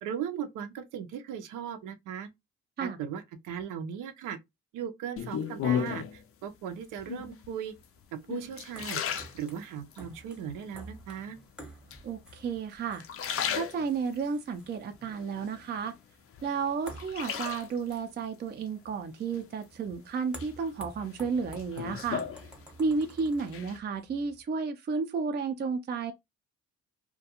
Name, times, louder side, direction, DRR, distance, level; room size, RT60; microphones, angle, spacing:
voice 1, 0.0-2.3 2.8-4.4 4.7-7.7 8.3-9.0 9.3-11.4, right 8 dB, 90° right, 0.6 m, -38 dB
sound 1, 5.2-6.2 7.0-7.5 8.0-10.0 10.5-11.1 11.9-12.6 12.9-14.2 14.7-15.9 16.3-18.0 19.3-19.9 20.4-23.0 23.3-23.8, left 8 dB, 50° left, 0.4 m, -35 dB
sound 2, 6.7-24.4, right 1 dB, 5° right, 0.8 m, -52 dB
voice 2, 12.0-13.1 13.5-15.9 16.4-22.2 22.8-26.1, right 5 dB, 35° right, 0.4 m, -32 dB
2.4 x 2.2 x 2.8 m
cardioid pair, 90°, 30 cm